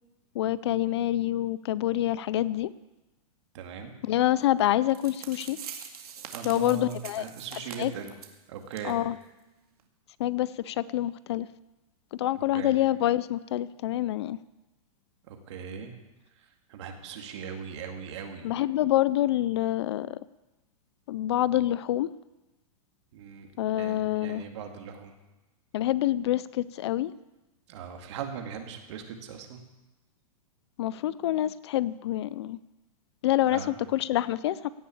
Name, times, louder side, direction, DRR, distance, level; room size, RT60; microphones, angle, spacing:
voice 1, 0.3-2.7 4.0-5.6 6.4-7.3 7.5-7.9 8.8-9.2 10.2-11.5 12.2-14.4 18.4-20.2 21.1-22.1 23.6-24.4 25.7-27.1 30.8-32.6 33.2-34.7, left 14 dB, 45° left, 18 dB, 0.4 m, -27 dB
voice 2, 3.5-3.9 6.3-8.1 8.5-9.0 12.5-12.7 15.3-15.9 16.7-18.5 23.1-23.5 23.8-25.1 27.7-29.6 33.5-33.7, right 7 dB, 50° right, 4 dB, 2.1 m, -39 dB
sound 1, 4.6-4.7 4.9-8.4 8.7-8.9 9.2-9.3 9.8-9.9, right 8 dB, 90° right, 2.2 m, -43 dB
17.0 x 6.9 x 8.6 m, 1.1 s
supercardioid pair, 170°, 19 cm